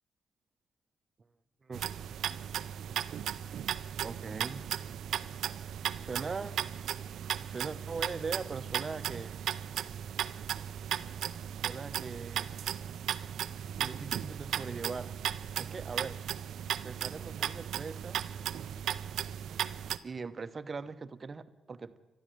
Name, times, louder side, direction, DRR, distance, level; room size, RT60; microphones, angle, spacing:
sound 1, 1.7-20.0, right 10 dB, 75° right, 0.5 m, -36 dB
voice 1, 4.0-4.7 6.0-6.6 7.5-9.4 11.6-12.6 13.8-15.1 15.6-16.2 16.8-18.2 20.0-22.0, right 4 dB, 40° right, 13 dB, 0.9 m, -40 dB
12.5 x 12.5 x 9.0 m, 1.1 s
cardioid pair, 75°, 0 cm